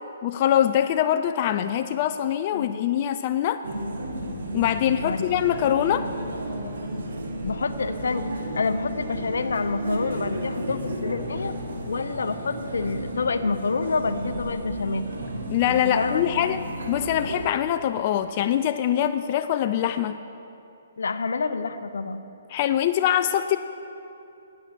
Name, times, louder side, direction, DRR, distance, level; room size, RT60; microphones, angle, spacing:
voice 1, 0.2-3.6 4.5-6.1 15.5-16.6 16.9-20.2 22.5-23.6, left 11 dB, 40° left, 9 dB, 0.3 m, -23 dB
sound 1, 3.6-17.5, right 1 dB, 75° right, 1.6 m, -32 dB
voice 2, 4.5-5.3 7.4-8.3 8.5-11.6 11.9-15.2 15.7-16.3 21.0-22.2, left 4 dB, 80° left, 11 dB, 0.7 m, -28 dB
10.0 x 8.9 x 6.5 m, 2.8 s
hypercardioid pair, 145°, 0 cm